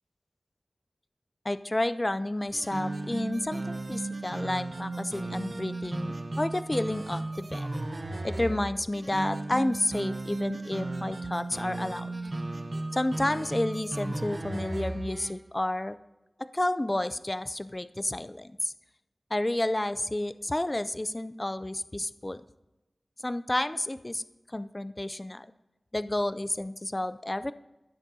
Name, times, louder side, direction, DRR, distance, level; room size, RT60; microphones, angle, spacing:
voice 1, 1.4-7.7 8.2-12.1 12.9-16.0 16.5-18.7 19.3-22.4 23.2-24.2 24.5-25.5 25.9-27.5, left 1 dB, 30° left, 13 dB, 0.3 m, -30 dB
sound 1, 2.5-15.4, right 2 dB, 55° right, 0.9 m, -35 dB
16.5 x 7.2 x 2.7 m, 1.0 s
wide cardioid pair, 55°, 0 cm